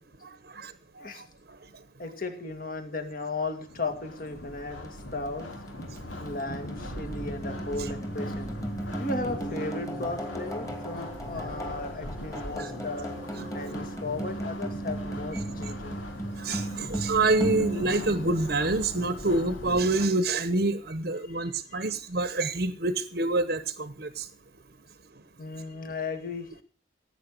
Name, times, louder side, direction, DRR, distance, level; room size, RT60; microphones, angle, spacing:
voice 1, 0.5-1.1 12.6-12.7 16.4-24.3, right 2 dB, 55° right, 12 dB, 0.9 m, -27 dB
voice 2, 2.0-5.5 6.2-8.6 9.0-13.1 13.5-16.0 21.3-21.9 25.4-26.5, left 3 dB, 45° left, 7 dB, 2.1 m, -36 dB
sound 1, 3.4-20.1, left 1 dB, 85° left, 2.9 m, -41 dB
sound 2, 4.8-19.0, right 1 dB, 15° left, 2.4 m, -36 dB
17.0 x 8.9 x 6.5 m, 0.41 s
head